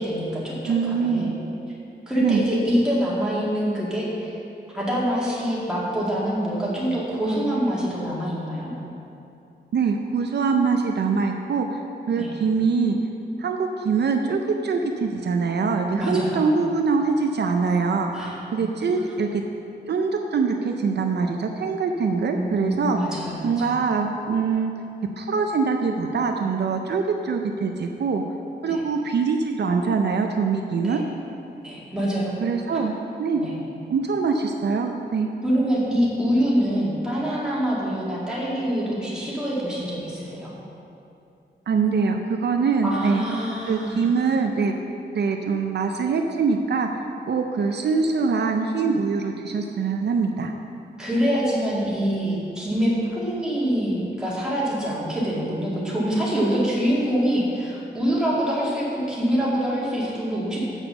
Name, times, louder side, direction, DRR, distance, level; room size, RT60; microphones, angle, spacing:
voice 1, 0.0-1.3 2.1-4.4 4.7-8.7 12.2-12.3 16.0-16.5 18.1-18.7 22.3-23.7 28.7-28.8 30.8-31.0 31.6-32.4 33.4-33.5 35.4-40.5 42.8-44.1 51.0-60.7, equal, 5° right, -7 dB, 2.0 m, -25 dB
voice 2, 0.7-1.5 2.2-2.5 9.7-11.8 12.1-13.0 13.4-19.4 19.9-23.0 23.4-24.7 25.2-28.2 28.6-31.0 32.4-33.4 33.9-35.3 41.7-43.2 43.7-44.7 45.1-46.9 47.3-50.5, right 5 dB, 65° right, 4 dB, 0.5 m, -23 dB
7.2 x 6.0 x 6.8 m, 2.7 s
wide cardioid pair, 160°, 19 cm